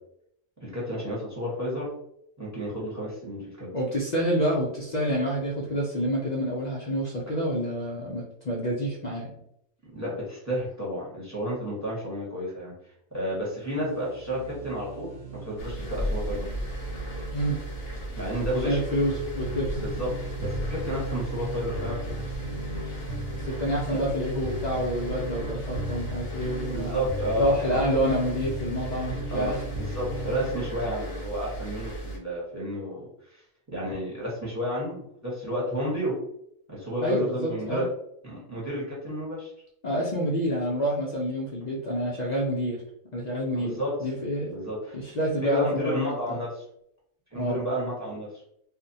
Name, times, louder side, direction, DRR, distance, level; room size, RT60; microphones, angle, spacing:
voice 1, 0.6-1.9 2.4-3.7 9.9-12.7 13.1-15.2 15.4-16.4 18.2-18.8 19.8-20.1 20.4-22.0 23.9-24.0 26.7-27.9 29.3-33.4 33.7-36.1 36.7-37.9 38.2-39.5 43.5-43.9 44.5-45.0 45.4-46.6 47.3-48.3, equal, 15° right, -6 dB, 0.8 m, -31 dB
voice 2, 3.7-9.3 17.3-17.6 18.6-19.8 23.4-27.0 27.4-29.6 37.0-37.9 39.8-42.8 43.1-44.5 44.9-46.4 47.3-47.6, equal, 85° left, -5 dB, 0.3 m, -28 dB
sound 1, 13.5-30.7, right 1 dB, 60° right, 0.8 m, -37 dB
sound 2, 15.6-32.2, right 1 dB, 55° left, 0.8 m, -36 dB
2.5 x 2.1 x 2.6 m, 0.73 s
omnidirectional pair, 1.4 m